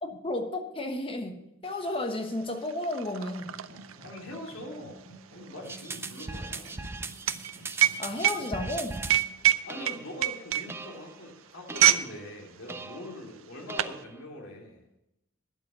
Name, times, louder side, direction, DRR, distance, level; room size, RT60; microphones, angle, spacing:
voice 1, 0.0-3.6 8.0-9.0, left 1 dB, 25° left, 6 dB, 1.1 m, -33 dB
sound 1, 1.8-1.9 2.1-12.1 12.4-12.7 13.3-14.0, right 13 dB, 70° right, 0.5 m, -27 dB
sound 2, 3.3-12.2, right 2 dB, 30° right, 4.5 m, -53 dB
voice 2, 4.0-6.8 9.6-14.8, left 1 dB, 65° left, 0 dB, 2.7 m, -43 dB
sound 3, 5.6-9.2 9.7-10.2 10.7-11.1 11.7-12.2 12.7-13.2 13.7-14.2, right 3 dB, 10° right, 0.4 m, -39 dB
12.5 x 9.3 x 6.1 m, 0.87 s
head